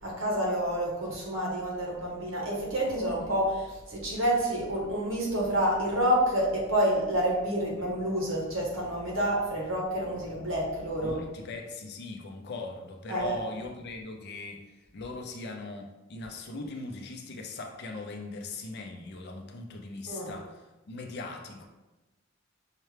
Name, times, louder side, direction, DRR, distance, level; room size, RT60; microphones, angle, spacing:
voice 1, 0.0-11.2 13.1-13.4 20.1-20.3, equal, 75° right, -2 dB, 1.2 m, -28 dB
voice 2, 11.0-14.7 14.9-21.7, left 2 dB, 55° left, 3 dB, 0.5 m, -40 dB
5.5 x 2.2 x 3.3 m, 1.1 s
head